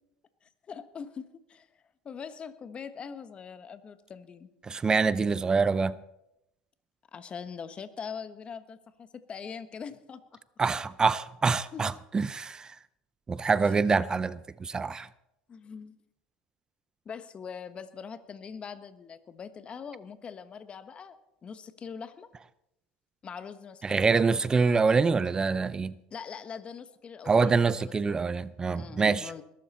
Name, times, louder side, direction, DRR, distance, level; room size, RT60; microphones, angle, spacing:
voice 1, 0.4-1.7 2.0-4.5 7.1-10.4 11.7-11.8 13.6-13.7 15.5-15.9 17.0-21.2 21.4-22.3 23.2-24.0 26.1-28.1 28.7-29.4, left 6 dB, 30° left, 1.3 m, -42 dB
voice 2, 4.6-6.0 10.6-12.7 13.3-15.1 23.8-25.9 27.3-29.3, right 4 dB, 20° right, 0.5 m, -25 dB
21.0 x 12.5 x 4.3 m
supercardioid pair, 105°, 4 cm